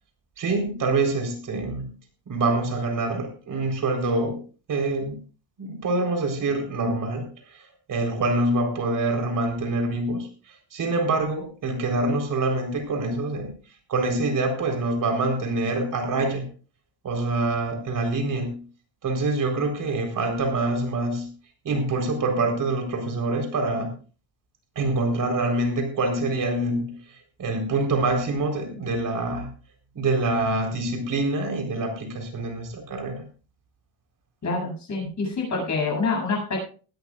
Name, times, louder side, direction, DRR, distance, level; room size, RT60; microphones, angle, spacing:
voice 1, 0.4-1.9 2.3-4.4 4.7-5.2 5.6-13.5 13.9-16.4 17.0-18.6 19.0-21.3 21.6-23.9 24.8-27.0 27.4-29.5 29.9-33.2, right 2 dB, 45° right, 4 dB, 4.2 m, -25 dB
voice 2, 34.4-36.6, left 3 dB, 40° left, 0 dB, 7.9 m, -26 dB
20.0 x 13.0 x 2.5 m, 0.37 s
cardioid pair, 150°, 42 cm